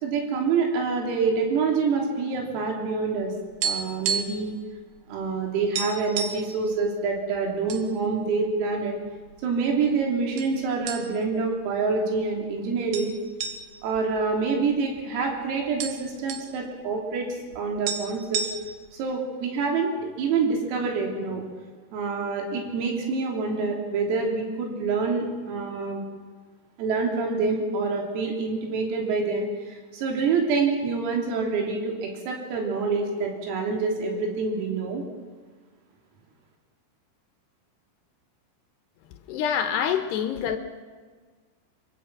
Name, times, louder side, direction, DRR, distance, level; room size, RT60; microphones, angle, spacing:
voice 1, 0.0-3.3 3.6-4.6 5.1-9.0 9.4-13.1 13.8-17.3 17.6-18.5 18.9-21.5 21.9-26.0 26.8-35.0, right 4 dB, 85° right, 0 dB, 5.7 m, -26 dB
sound 1, 3.0-4.5 4.8-4.9 5.3-5.4 5.7-6.5 7.2-7.8 8.2-8.4 9.1-9.7 10.4-10.5 10.9-11.4 11.7-11.8 12.9-15.0 15.3-15.4 15.6-16.5 17.5-17.6 17.9-18.9, right 6 dB, 60° right, 2.9 m, -31 dB
voice 2, 39.3-40.6, left 8 dB, 75° left, 7 dB, 2.6 m, -26 dB
24.0 x 24.0 x 6.0 m, 1.5 s
omnidirectional pair, 6.0 m